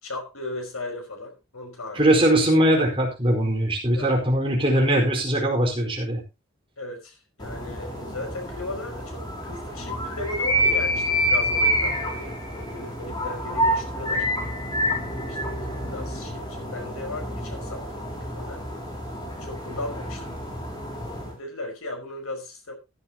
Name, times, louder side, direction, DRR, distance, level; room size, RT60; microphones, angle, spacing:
voice 1, 0.0-2.1 3.9-4.2 6.8-14.3 15.0-15.6 15.9-18.6 19.2-20.4 21.1-22.7, left 2 dB, 85° left, 3 dB, 5.2 m, -37 dB
voice 2, 1.9-6.2, right 1 dB, 25° right, 0 dB, 4.6 m, -21 dB
sound 1, 7.4-21.3, equal, 20° left, 4.0 m, -28 dB
15.0 x 11.5 x 2.9 m, 0.27 s
head